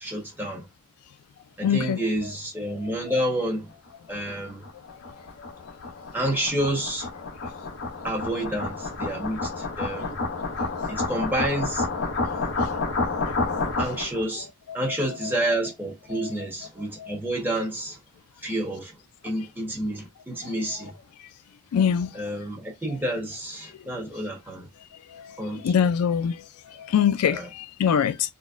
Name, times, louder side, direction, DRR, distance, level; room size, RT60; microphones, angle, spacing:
voice 1, 0.0-0.7 1.6-3.8 4.1-4.6 6.1-7.1 8.0-10.2 10.9-11.9 13.8-14.5 14.7-18.0 18.4-19.0 19.2-20.9 22.1-24.7 25.4-25.9 27.2-27.5, right 1 dB, 10° right, 1.3 m, -29 dB
voice 2, 1.6-2.0 10.8-10.9 13.3-13.4 16.1-16.3 17.0-17.1 21.7-22.1 25.6-26.4 26.9-28.3, left 8 dB, 80° left, 0.3 m, -23 dB
sound 1, 4.3-14.2, left 3 dB, 60° left, 0.8 m, -30 dB
4.1 x 2.2 x 2.4 m
head